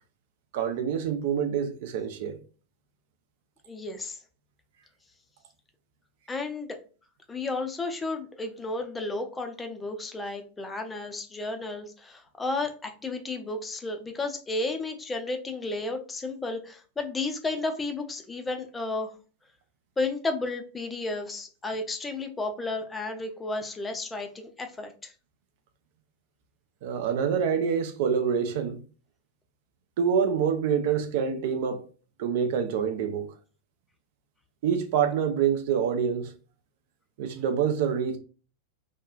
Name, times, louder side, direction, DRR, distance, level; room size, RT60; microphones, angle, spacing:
voice 1, 0.5-2.4 26.8-28.8 30.0-31.8 32.2-33.3 34.6-36.3 37.2-38.2, right 7 dB, 50° right, 0.4 m, -26 dB
voice 2, 3.7-4.2 6.3-6.8 7.3-19.1 20.0-25.1, left 3 dB, 15° left, 0.5 m, -33 dB
2.7 x 2.3 x 2.3 m
figure-of-eight pair, 90°, 0 cm